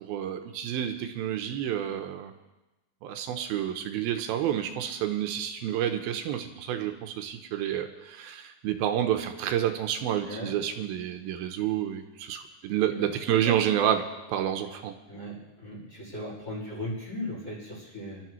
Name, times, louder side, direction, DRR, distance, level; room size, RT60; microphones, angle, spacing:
voice 1, 0.0-2.3 3.0-14.9, right 10 dB, 85° right, 6 dB, 2.7 m, -29 dB
voice 2, 12.9-13.7 15.1-18.2, left 1 dB, 20° left, -6 dB, 5.2 m, -38 dB
26.0 x 13.0 x 3.1 m, 1.1 s
omnidirectional pair, 4.3 m